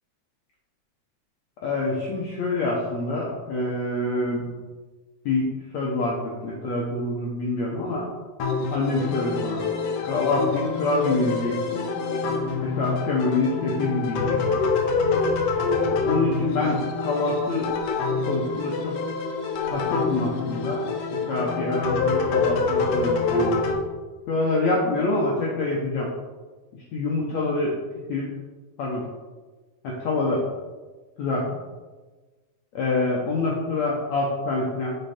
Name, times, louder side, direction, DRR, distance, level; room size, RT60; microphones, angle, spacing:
voice 1, 1.6-4.5 5.2-8.1 8.7-9.6 10.0-11.9 12.6-14.6 16.0-17.7 18.3-18.9 19.7-20.8 21.3-23.7 24.3-26.1 26.9-27.7 28.1-28.3 28.8-29.0 29.8-30.5 31.2-31.5 32.7-34.9, left 2 dB, 90° left, -3 dB, 1.5 m, -26 dB
sound 1, 8.4-23.8, left 4 dB, 70° left, 2.1 m, -26 dB
6.7 x 5.9 x 4.3 m, 1.3 s
omnidirectional pair, 4.6 m